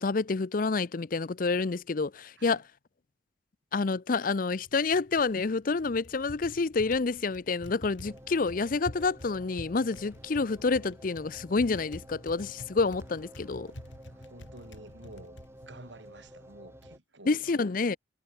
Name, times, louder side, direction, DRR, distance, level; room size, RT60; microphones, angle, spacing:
voice 1, 0.0-2.6 3.7-13.7 17.3-18.0, left 4 dB, 45° left, 0.5 m, -28 dB
Typing, 4.5-17.0, left 1 dB, 85° left, 3.7 m, -49 dB
sound 1, 5.2-15.7, equal, 35° right, 6.2 m, -66 dB
sound 2, 8.0-17.0, equal, 15° right, 6.7 m, -52 dB
voice 2, 14.1-15.4 15.7-18.0, right 2 dB, 75° right, 4.8 m, -51 dB
head